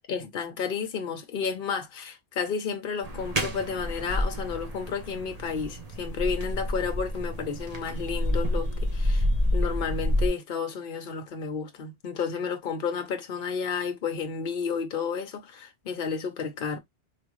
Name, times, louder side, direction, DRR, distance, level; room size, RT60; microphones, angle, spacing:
voice 1, 0.1-9.3 9.5-16.8, left 6 dB, 55° left, 1.0 m, -31 dB
sound 1, 3.0-10.3, left 1 dB, 35° right, 1.1 m, -29 dB
3.6 x 3.1 x 3.1 m
omnidirectional pair, 1.1 m